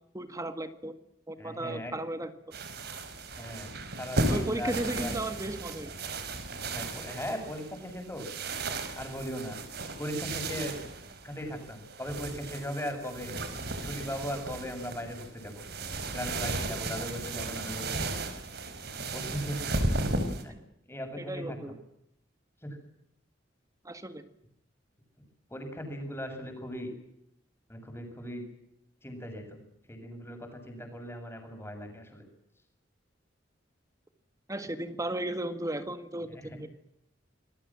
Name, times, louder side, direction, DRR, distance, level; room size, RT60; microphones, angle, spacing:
voice 1, 0.1-0.9 1.3-2.5 4.3-5.9 21.2-21.7 23.8-24.2 34.5-36.7, right 1 dB, 20° right, 9 dB, 1.8 m, -35 dB
voice 2, 1.4-1.9 3.3-3.7 4.0-4.7 5.0-5.2 6.7-8.3 9.0-9.6 10.0-10.8 11.2-13.3 13.8-15.6 16.1-18.2 19.1-19.6 20.3-20.5 20.8-21.6 22.6-22.8 25.5-26.9 27.7-28.4 29.0-29.6 29.9-32.2 36.4-36.6, equal, 15° left, 5 dB, 7.6 m, -38 dB
sound 1, 2.5-20.4, right 2 dB, 60° right, 4.9 m, -35 dB
27.0 x 22.5 x 7.6 m, 0.77 s
head